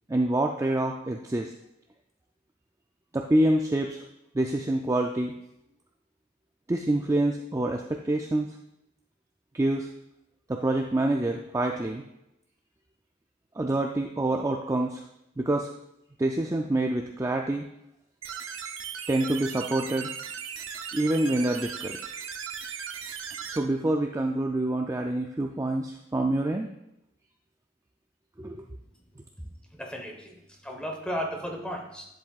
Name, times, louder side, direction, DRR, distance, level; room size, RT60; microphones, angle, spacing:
voice 1, 0.1-1.5 3.1-4.0 4.3-5.3 6.7-8.6 9.5-9.9 10.5-12.0 13.6-15.0 15.4-15.7 16.2-17.7 19.1-20.1 20.9-22.0 23.5-26.7 28.4-28.6, right 1 dB, 15° right, 2 dB, 0.3 m, -26 dB
sound 1, 18.2-23.6, right 7 dB, 80° right, 0.7 m, -37 dB
voice 2, 29.7-30.3 30.6-32.0, equal, 5° left, 2 dB, 1.0 m, -34 dB
10.5 x 7.5 x 2.4 m, 0.84 s
head